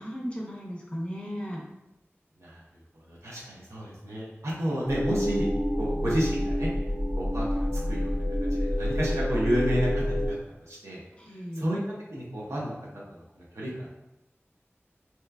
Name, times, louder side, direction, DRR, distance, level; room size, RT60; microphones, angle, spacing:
voice 1, 0.0-1.6 11.1-11.7, equal, 25° left, -3 dB, 0.7 m, -36 dB
voice 2, 2.9-5.5 5.8-6.7 7.1-8.1 8.5-10.3 10.6-11.0 11.6-11.8 12.1-12.7 13.4-13.9, equal, 85° right, -5 dB, 0.7 m, -31 dB
sound 1, 4.8-10.3, equal, 5° right, 0.9 m, -28 dB
2.9 x 2.2 x 2.2 m, 0.93 s
wide cardioid pair, 40°, 5 cm